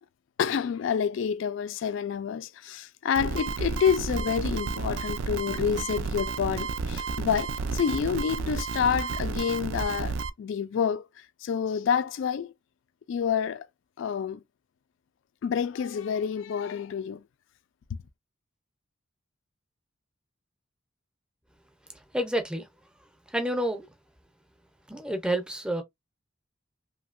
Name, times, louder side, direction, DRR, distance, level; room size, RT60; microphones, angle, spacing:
voice 1, 0.4-12.5 13.1-13.7 14.0-14.4 15.4-17.2, left 7 dB, 65° left, 0.3 m, -28 dB
sound 1, 3.1-10.3, right 4 dB, 65° right, 0.3 m, -32 dB
voice 2, 22.1-22.7 23.3-23.9 24.9-25.8, right 1 dB, 5° right, 0.5 m, -29 dB
2.8 x 2.7 x 2.4 m
head